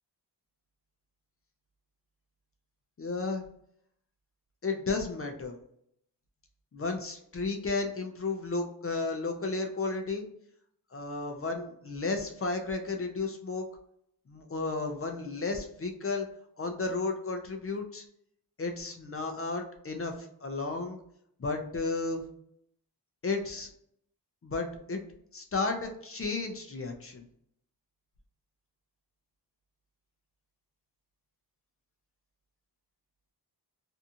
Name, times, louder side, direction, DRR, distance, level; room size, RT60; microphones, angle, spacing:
voice 1, 3.0-3.5 4.6-5.5 6.7-10.2 10.9-13.7 14.3-16.3 16.6-18.0 18.6-21.0 21.4-22.2 23.2-23.7 24.4-25.0 25.3-27.2, left 3 dB, 35° left, 4 dB, 0.5 m, -33 dB
2.6 x 2.3 x 2.7 m, 0.71 s
wide cardioid pair, 90°, 41 cm